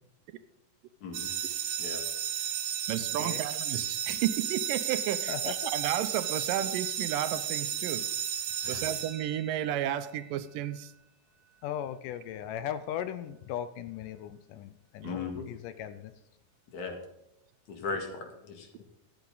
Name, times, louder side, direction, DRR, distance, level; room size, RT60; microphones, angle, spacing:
sound 1, 1.1-9.8, right 9 dB, 65° right, 1.8 m, -33 dB
voice 1, 2.9-8.0 8.7-10.9 15.0-15.2, right 11 dB, 80° right, 12 dB, 2.3 m, -32 dB
voice 2, 5.3-5.7 11.6-16.1, left 10 dB, 80° left, 12 dB, 2.1 m, -38 dB
voice 3, 15.0-15.4 16.7-16.9 17.7-18.8, left 4 dB, 60° left, 3 dB, 3.2 m, -37 dB
13.5 x 10.5 x 3.9 m, 0.84 s
omnidirectional pair, 4.0 m